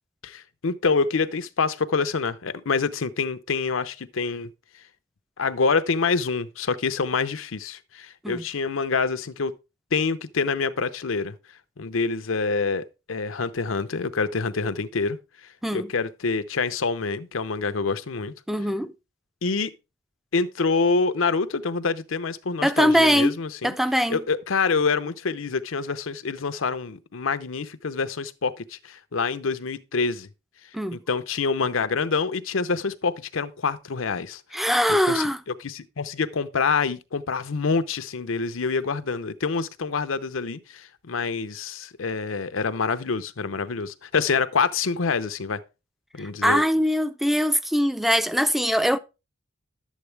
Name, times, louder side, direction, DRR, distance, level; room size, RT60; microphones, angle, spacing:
voice 1, 0.2-4.5 5.4-9.5 9.9-11.4 11.8-15.2 15.7-18.3 19.4-19.7 20.3-23.7 24.1-30.3 30.9-34.4 34.9-35.2 35.6-45.6 46.1-46.6, left 4 dB, 80° left, 0.7 m, -26 dB
voice 2, 18.5-18.9 22.6-23.4 23.6-24.2 30.7-31.0 34.5-35.4 46.2-49.0, equal, ahead, 0.4 m, -22 dB
11.5 x 8.3 x 3.3 m
head